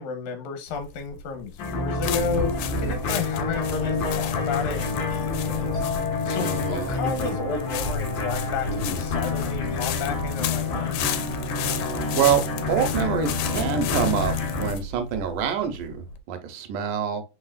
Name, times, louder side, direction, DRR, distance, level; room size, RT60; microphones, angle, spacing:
voice 1, 0.0-5.9 6.3-11.1, left 5 dB, 70° left, 2.0 m, -33 dB
sound 1, 0.7-16.2, left 5 dB, 90° left, 2.2 m, -33 dB
sound 2, 1.6-14.7, left 4 dB, 55° left, 1.4 m, -28 dB
sound 3, 5.7-9.4, left 5 dB, 35° left, 1.3 m, -37 dB
voice 2, 6.4-6.9 12.2-17.2, right 8 dB, 80° right, 2.2 m, -26 dB
4.8 x 4.3 x 2.4 m
omnidirectional pair, 3.8 m